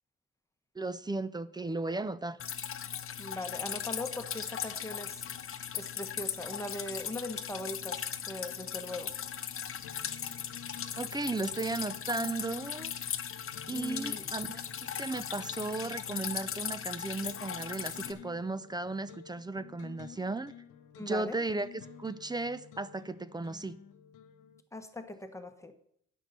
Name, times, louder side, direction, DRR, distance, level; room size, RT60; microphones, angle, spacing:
voice 1, 0.8-2.4 11.0-12.9 13.7-14.6 15.0-20.5 21.0-23.8, right 3 dB, 15° right, 15 dB, 0.5 m, -35 dB
Drip, 2.4-18.1, left 8 dB, 45° left, 0.8 m, -38 dB
voice 2, 3.2-5.2 5.7-9.1 13.7-14.3 20.9-21.4 24.7-25.8, left 2 dB, 10° left, 7 dB, 1.2 m, -40 dB
sound 1, 9.8-24.6, left 8 dB, 90° left, 0.8 m, -53 dB
9.3 x 6.2 x 6.7 m, 0.71 s
cardioid pair, 90°, 30 cm